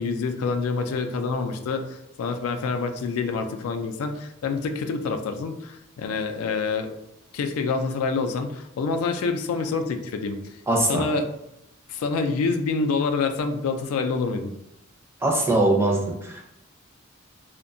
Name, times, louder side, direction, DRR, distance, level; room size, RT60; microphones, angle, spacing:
voice 1, 0.0-6.9 7.3-10.4 10.9-11.3 11.9-14.5, left 4 dB, 85° left, 7 dB, 0.3 m, -27 dB
voice 2, 10.7-11.0 15.2-16.4, right 2 dB, 10° right, -1 dB, 0.4 m, -21 dB
2.6 x 2.1 x 2.5 m, 0.84 s
head